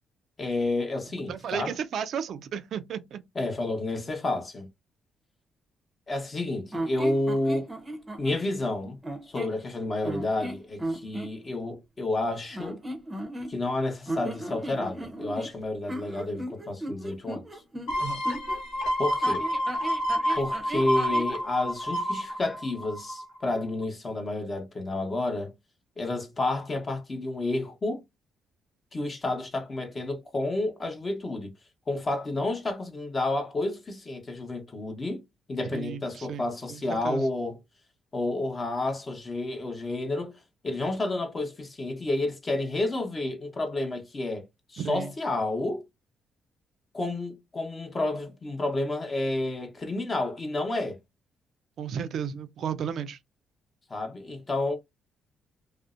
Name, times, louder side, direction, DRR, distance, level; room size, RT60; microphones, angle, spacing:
voice 1, 0.4-1.7 3.3-4.7 6.1-7.7 8.2-9.0 9.3-12.8 13.5-17.6 19.0-19.5 20.3-25.5 26.0-28.0 28.9-31.5 31.9-35.2 35.5-37.6 38.1-40.4 40.6-45.8 46.9-51.0 53.9-54.8, left 2 dB, 30° left, 0.8 m, -30 dB
voice 2, 1.3-3.2 18.0-18.2 35.7-36.4 36.7-37.2 44.8-45.1 51.8-53.2, right 7 dB, 65° right, 0.3 m, -33 dB
sound 1, 6.7-8.4 9.0-9.6 10.0-11.3 12.5-13.8 14.1-18.6 19.2-21.3, right 1 dB, 20° right, 0.6 m, -36 dB
sound 2, 17.9-23.4 23.8-23.9, equal, 90° left, 0.8 m, -29 dB
2.6 x 2.0 x 2.4 m
cardioid pair, 90°, 0 cm